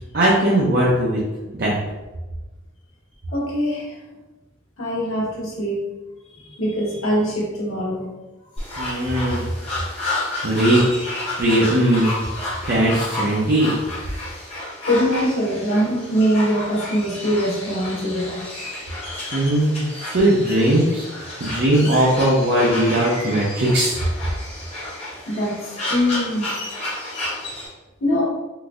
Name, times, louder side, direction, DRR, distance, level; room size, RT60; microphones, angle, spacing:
voice 1, 0.1-1.2 1.6-1.8 8.8-9.4 10.4-10.8 11.4-12.2 12.6-13.7 19.3-21.1 21.4-24.0, right 1 dB, 50° right, -6 dB, 0.5 m, -19 dB
voice 2, 3.3-4.0 4.8-5.8 6.3-8.1 14.8-18.4 25.3-26.5 28.0-28.2, equal, 85° left, -4 dB, 1.1 m, -22 dB
sound 1, 8.6-27.7, left 1 dB, 30° left, 0.9 m, -31 dB
3.8 x 2.6 x 2.4 m, 1.1 s
head